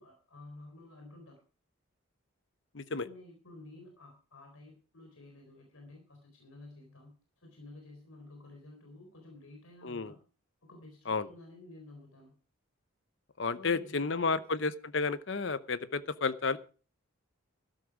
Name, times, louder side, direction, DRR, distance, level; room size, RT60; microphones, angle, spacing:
voice 1, 0.0-1.4 2.9-10.2 10.6-12.3 13.5-14.4, left 2 dB, 85° left, 2 dB, 4.0 m, -52 dB
voice 2, 2.7-3.1 9.8-10.1 11.1-11.3 13.4-16.6, left 4 dB, 60° left, 15 dB, 0.8 m, -32 dB
13.0 x 12.0 x 4.8 m, 0.38 s
head